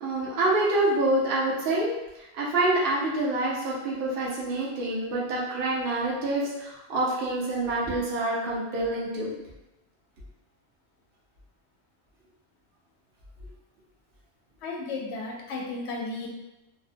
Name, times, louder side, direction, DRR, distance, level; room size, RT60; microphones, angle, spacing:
voice 1, 0.0-1.9 2.4-9.3, right 2 dB, 65° right, -5 dB, 0.8 m, -26 dB
voice 2, 14.6-16.3, left 3 dB, 85° left, -1 dB, 0.9 m, -34 dB
2.6 x 2.1 x 2.6 m, 0.94 s
omnidirectional pair, 1.1 m